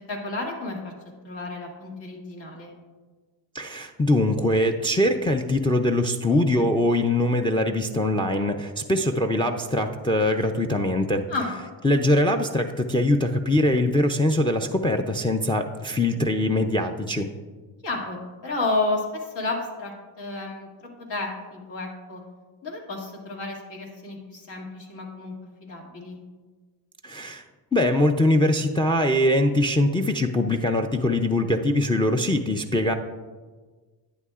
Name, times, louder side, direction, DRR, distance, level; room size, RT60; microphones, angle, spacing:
voice 1, 0.1-0.9 1.2-2.7 11.3-11.5 17.8-20.7 21.1-22.2 22.6-26.2, left 2 dB, 70° left, -1 dB, 2.3 m, -31 dB
voice 2, 3.5-11.3 11.8-17.3 27.0-27.4 27.7-32.9, left 1 dB, 10° left, 6 dB, 0.4 m, -22 dB
11.0 x 9.1 x 2.4 m, 1.4 s
cardioid pair, 85°, 45 cm